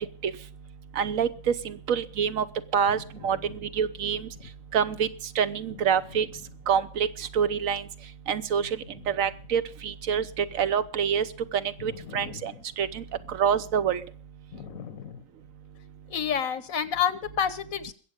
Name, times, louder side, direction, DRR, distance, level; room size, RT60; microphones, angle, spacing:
voice 1, 1.0-2.4 2.7-4.3 4.7-5.1 5.4-6.3 6.7-7.8 8.3-8.7 9.1-11.2 11.5-14.0, right 7 dB, 80° right, 14 dB, 1.2 m, -26 dB
voice 2, 11.8-12.6 14.5-15.2 16.1-17.9, left 8 dB, 85° left, 15 dB, 1.5 m, -30 dB
21.0 x 7.8 x 5.2 m, 0.43 s
omnidirectional pair, 1.4 m